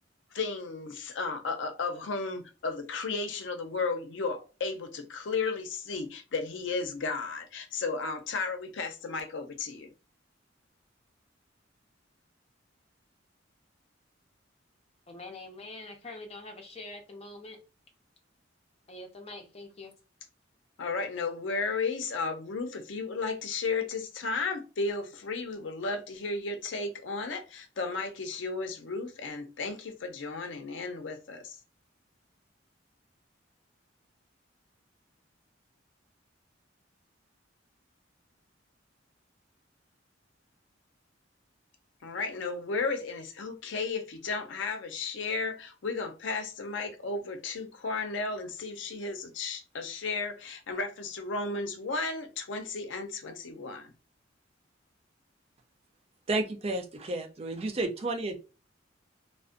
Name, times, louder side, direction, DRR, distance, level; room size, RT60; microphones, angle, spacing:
voice 1, 0.3-9.9 20.8-31.6 42.0-53.9, left 4 dB, 70° left, 0.5 m, -34 dB
voice 2, 15.1-17.6 18.9-19.9, left 2 dB, 35° left, 0.6 m, -44 dB
voice 3, 56.3-58.4, right 2 dB, 30° right, 0.4 m, -31 dB
2.5 x 2.1 x 2.4 m
head